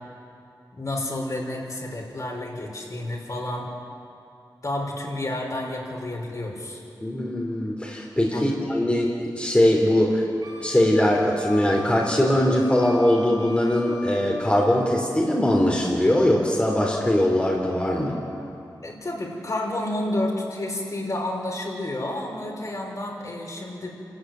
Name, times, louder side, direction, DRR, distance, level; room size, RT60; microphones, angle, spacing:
voice 1, 0.7-3.7 4.6-6.8 8.3-8.5 18.8-24.0, left 1 dB, 45° left, -1 dB, 5.3 m, -30 dB
voice 2, 7.0-10.2 10.6-18.2, left 1 dB, 15° left, -2 dB, 3.5 m, -21 dB
Wind instrument woodwind instrument, 10.4-14.5, left 2 dB, 70° right, 4.4 m, -41 dB
27.5 x 14.0 x 9.4 m, 2.6 s
wide cardioid pair, 75°, 8 cm